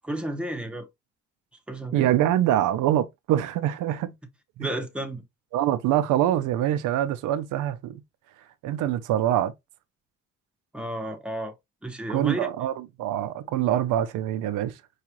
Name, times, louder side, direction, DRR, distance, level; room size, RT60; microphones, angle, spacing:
voice 1, 0.0-0.9 1.7-2.1 4.6-5.2 10.7-11.5 11.8-12.5, right 1 dB, 5° right, 0.9 m, -32 dB
voice 2, 1.9-4.1 4.6-4.7 5.5-8.0 8.6-9.5 12.1-14.8, right 12 dB, 85° right, 0.5 m, -24 dB
4.8 x 2.4 x 2.9 m
cardioid pair, 90°, 30 cm